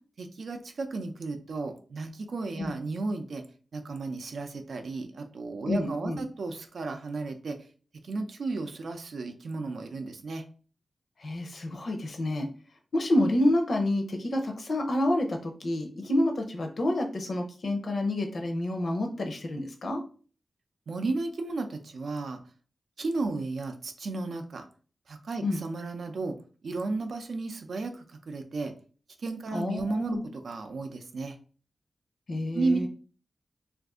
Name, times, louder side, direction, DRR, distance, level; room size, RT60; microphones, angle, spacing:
voice 1, 0.2-3.4 3.7-7.6 8.0-10.4 20.9-22.4 23.0-24.7 25.1-26.3 26.6-28.7 29.2-30.2 30.4-31.4 32.5-32.9, right 3 dB, 70° right, 6 dB, 0.5 m, -33 dB
voice 2, 5.7-6.2 11.2-12.5 12.9-20.0 25.4-25.6 29.5-30.3 32.3-32.9, left 1 dB, 55° left, 3 dB, 0.6 m, -28 dB
2.5 x 2.4 x 3.5 m, 0.39 s
wide cardioid pair, 145°, 0 cm